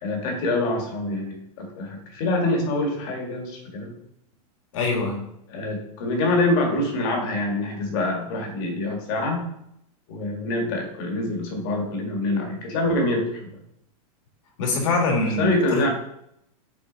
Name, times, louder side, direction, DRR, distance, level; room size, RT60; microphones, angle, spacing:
voice 1, 0.0-3.9 5.5-9.4 10.1-13.5 15.4-15.9, left 2 dB, 40° left, 2 dB, 1.7 m, -25 dB
voice 2, 4.7-5.2 14.6-15.8, left 3 dB, 60° left, 1 dB, 2.1 m, -24 dB
6.3 x 4.1 x 3.9 m, 0.76 s
supercardioid pair, 165°, 19 cm